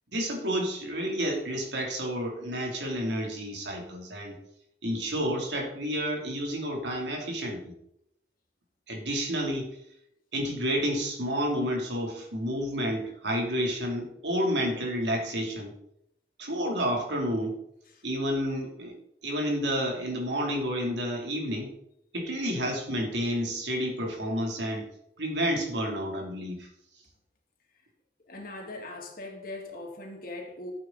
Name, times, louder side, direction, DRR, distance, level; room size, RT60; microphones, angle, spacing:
voice 1, 0.1-4.3 4.8-7.7 8.9-9.7 10.3-15.7 16.4-17.6 18.0-19.0 19.2-21.7 22.1-24.8 25.2-26.7, equal, 80° right, 0 dB, 3.2 m, -30 dB
voice 2, 28.2-30.7, left 2 dB, 55° left, 1 dB, 2.6 m, -40 dB
14.0 x 8.6 x 4.1 m, 0.77 s
head